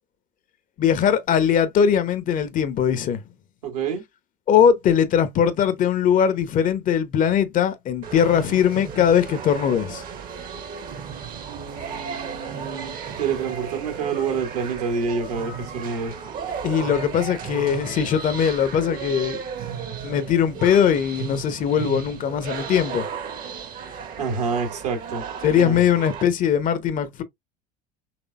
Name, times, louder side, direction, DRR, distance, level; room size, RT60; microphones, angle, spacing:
voice 1, 0.8-3.2 4.5-10.0 16.6-19.4 20.0-23.1 25.4-27.2, left 8 dB, 40° left, 0.9 m, -20 dB
voice 2, 3.6-4.0 11.5-16.1 24.2-25.2 25.6-25.8, right 5 dB, 70° right, 2.0 m, -28 dB
sound 1, 8.0-26.2, right 6 dB, 45° right, 1.2 m, -35 dB
6.1 x 3.2 x 2.4 m
figure-of-eight pair, 70°, 21 cm